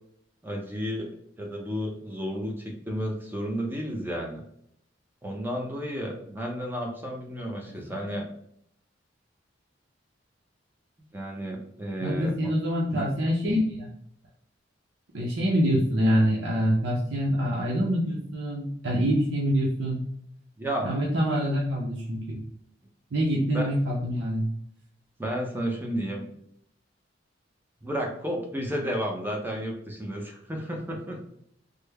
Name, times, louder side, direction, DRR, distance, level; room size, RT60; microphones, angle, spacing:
voice 1, 0.4-1.1 1.4-4.4 5.2-8.3 11.1-12.5 12.9-13.0 20.6-21.0 23.5-23.7 25.2-26.3 27.8-31.2, equal, 10° right, 0 dB, 0.6 m, -32 dB
voice 2, 7.7-8.0 12.0-13.9 15.1-20.1 20.8-22.4 23.1-24.5, equal, 85° right, -5 dB, 0.7 m, -25 dB
3.4 x 2.1 x 3.3 m, 0.71 s
head